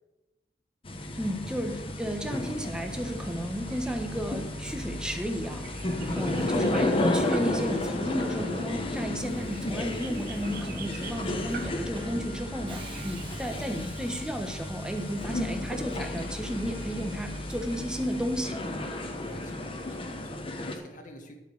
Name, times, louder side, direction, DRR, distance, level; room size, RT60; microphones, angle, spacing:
sound 1, 0.9-20.8, left 1 dB, 30° left, 1.1 m, -33 dB
voice 1, 1.2-5.7 6.1-18.9, equal, 5° right, 3 dB, 1.3 m, -33 dB
sound 2, 2.9-13.5, right 4 dB, 55° right, 0.8 m, -46 dB
Subway metro underground, 5.9-20.3, left 1 dB, 30° right, 1.6 m, -47 dB
voice 2, 6.4-7.0 19.2-21.3, left 1 dB, 45° left, 3 dB, 1.8 m, -47 dB
11.5 x 6.2 x 6.6 m, 1.1 s
head